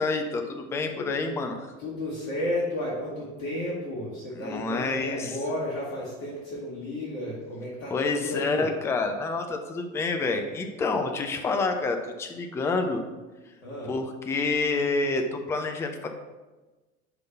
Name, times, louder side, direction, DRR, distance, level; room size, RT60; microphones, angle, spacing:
voice 1, 0.0-1.7 4.4-5.3 7.9-13.0 13.9-16.1, left 3 dB, 5° left, 5 dB, 0.3 m, -28 dB
voice 2, 1.8-8.7 13.6-14.0, left 1 dB, 65° left, -6 dB, 1.7 m, -33 dB
5.2 x 3.9 x 5.4 m, 1.2 s
figure-of-eight pair, 70°, 41 cm